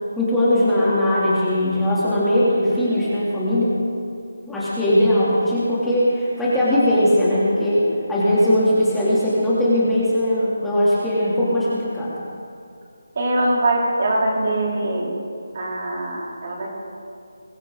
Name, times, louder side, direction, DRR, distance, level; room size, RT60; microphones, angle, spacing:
voice 1, 0.2-3.7 4.5-12.1, left 1 dB, 5° left, -11 dB, 3.4 m, -19 dB
voice 2, 13.2-15.1 15.5-16.8, right 1 dB, 45° right, -3 dB, 4.1 m, -22 dB
23.0 x 15.5 x 4.1 m, 2.4 s
figure-of-eight pair, 165°, 0 cm